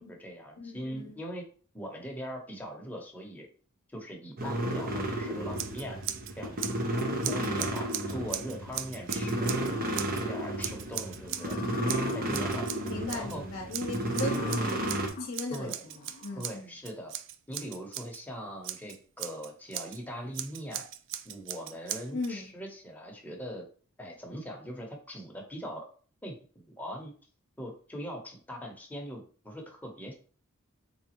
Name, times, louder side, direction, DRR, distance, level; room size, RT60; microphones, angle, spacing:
voice 1, 0.0-1.4 1.7-3.5 3.9-6.0 6.4-6.6 7.2-9.6 10.1-11.6 12.1-12.7 13.1-13.4 15.5-15.8 16.4-17.1 17.5-20.9 21.2-23.6 24.0-25.9 26.2-27.1 27.6-30.1, equal, 10° left, 0 dB, 0.9 m, -41 dB
voice 2, 0.6-1.2 12.5-15.7 16.2-16.7 22.1-22.4, left 2 dB, 65° left, -1 dB, 0.8 m, -37 dB
sound 1, 4.4-15.1, right 1 dB, 45° right, 0.7 m, -32 dB
Scissors, 5.5-6.3 6.6-10.2 10.6-11.6 11.9-13.4 13.7-18.2 18.6-20.0 20.3-22.3, right 11 dB, 65° right, 0.3 m, -39 dB
sound 2, 11.2-12.8 14.0-16.5, left 5 dB, 40° left, 0.4 m, -43 dB
4.1 x 3.5 x 2.9 m, 0.41 s
head